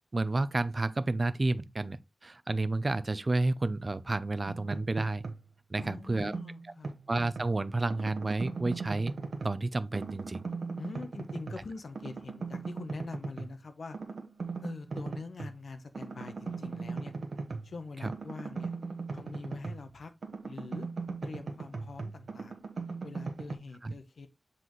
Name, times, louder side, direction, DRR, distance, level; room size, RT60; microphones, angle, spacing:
voice 1, 0.1-5.2 5.7-6.3 7.1-9.1 9.4-10.5 18.0-18.1 23.8-23.9, right 2 dB, 40° right, 0.5 m, -30 dB
sound 1, 4.5-5.5 5.8-7.5 7.9-9.7 9.9-11.7 12.0-13.5 13.9-15.6 15.9-19.9 20.2-23.6, right 4 dB, 85° right, 1.0 m, -39 dB
voice 2, 5.7-6.9 10.8-14.0 14.6-17.1 17.6-18.7 19.1-20.1 20.4-20.9 21.2-22.6 23.0-24.3, left 4 dB, 90° left, 0.9 m, -44 dB
7.6 x 4.1 x 3.1 m
wide cardioid pair, 85°, 0 cm